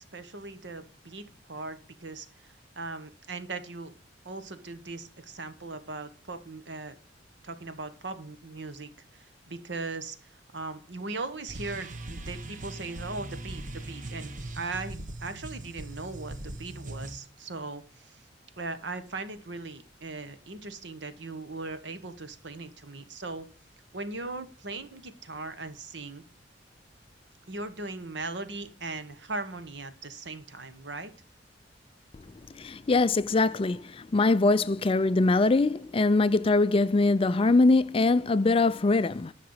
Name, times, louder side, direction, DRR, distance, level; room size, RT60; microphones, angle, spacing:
voice 1, 0.0-3.9 4.2-6.9 7.4-18.2 18.6-23.5 23.9-26.2 27.5-31.1, right 3 dB, 70° right, 1.2 m, -39 dB
sound 1, 11.5-17.2, right 2 dB, 45° right, 0.9 m, -40 dB
voice 2, 32.6-39.3, left 3 dB, 30° left, 0.4 m, -23 dB
10.5 x 6.0 x 5.6 m
head